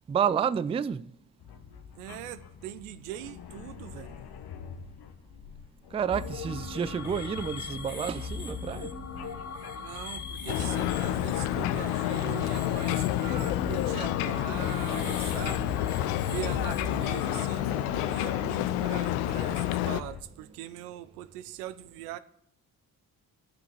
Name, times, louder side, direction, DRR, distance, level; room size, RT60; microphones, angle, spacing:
voice 1, 0.1-1.1 5.9-8.9, right 7 dB, 15° right, 0.3 m, -30 dB
sound 1, 1.4-17.2 17.8-20.2, left 7 dB, 55° left, 1.1 m, -44 dB
voice 2, 2.0-4.2 9.7-15.8 16.2-22.2, right 13 dB, 80° right, 0.7 m, -41 dB
sound 2, 6.1-17.6, left 4 dB, 40° left, 2.4 m, -39 dB
Ocean, 10.5-20.0, left 13 dB, 75° left, 0.6 m, -29 dB
11.0 x 5.9 x 7.3 m
hypercardioid pair, 45°, 46 cm